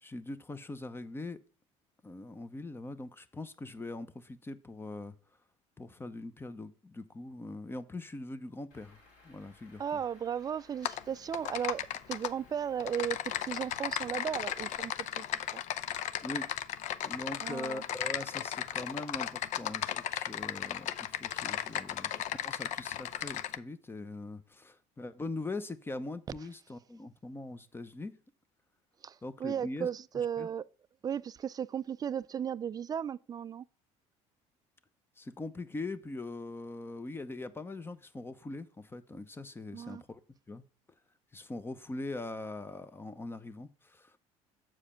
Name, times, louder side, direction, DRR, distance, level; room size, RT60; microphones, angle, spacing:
voice 1, 0.0-1.4 2.0-5.1 5.8-9.8 16.2-16.5 17.0-28.1 29.2-29.9 30.1-30.5 35.2-40.2 40.5-40.6 41.3-44.2, left 2 dB, 15° left, 0.8 m, -42 dB
Truck / Idling, 8.7-14.8, left 2 dB, 85° left, 4.3 m, -61 dB
voice 2, 9.8-11.8 12.1-13.2 13.4-15.2 15.5-15.6 17.4-17.8 29.0-30.6 31.0-33.6 39.7-40.0, right 8 dB, 25° right, 0.4 m, -35 dB
Typing, 10.8-11.0 11.3-12.3 12.8-23.6, left 11 dB, 60° left, 0.5 m, -36 dB
7.5 x 4.9 x 5.6 m
supercardioid pair, 95°, 14 cm